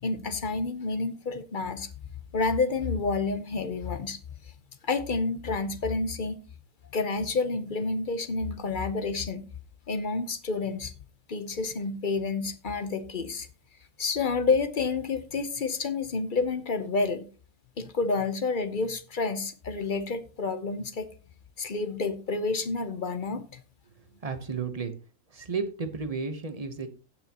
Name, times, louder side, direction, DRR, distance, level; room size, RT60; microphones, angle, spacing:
voice 1, 0.0-1.9 2.3-4.2 4.8-6.4 6.9-9.5 9.9-10.9 11.3-13.5 14.0-17.3 17.8-21.1 21.6-23.6, left 4 dB, 45° left, 0.9 m, -29 dB
voice 2, 24.2-24.9 25.3-26.9, right 5 dB, 30° right, 1.0 m, -32 dB
16.5 x 6.1 x 2.9 m
omnidirectional pair, 1.4 m